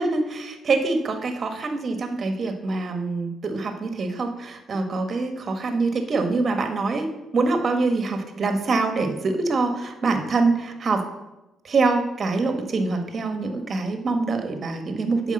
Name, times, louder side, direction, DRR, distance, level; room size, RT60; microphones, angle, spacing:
voice 1, 0.0-7.1 7.3-11.1 11.6-15.3, right 3 dB, 45° right, 6 dB, 1.3 m, -24 dB
8.3 x 5.0 x 6.5 m, 1.0 s
cardioid pair, 90°, 0 cm